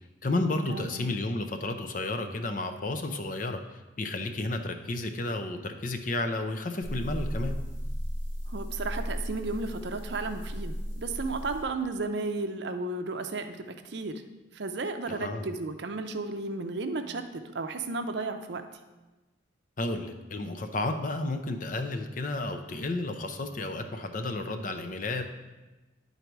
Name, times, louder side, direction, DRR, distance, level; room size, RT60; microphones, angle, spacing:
voice 1, 0.2-7.6 15.1-15.5 19.8-25.2, left 2 dB, 40° left, 6 dB, 0.6 m, -32 dB
sound 1, 6.8-11.6, equal, 90° left, 1.6 m, -35 dB
voice 2, 8.5-14.2 14.5-18.6, right 3 dB, 60° right, 7 dB, 0.5 m, -33 dB
10.0 x 4.0 x 4.6 m, 1.2 s
head